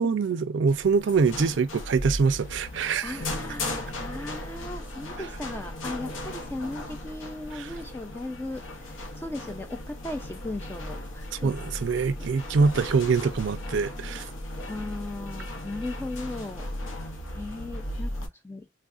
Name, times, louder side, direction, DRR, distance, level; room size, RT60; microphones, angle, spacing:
voice 1, 0.0-3.2 7.5-7.7 11.4-14.3, right 5 dB, 65° right, 0.4 m, -24 dB
sound 1, 0.7-18.3, left 1 dB, 85° left, 0.7 m, -37 dB
voice 2, 3.0-11.5 14.7-16.7 17.3-18.7, left 2 dB, 10° left, 0.3 m, -37 dB
3.4 x 2.3 x 2.4 m
head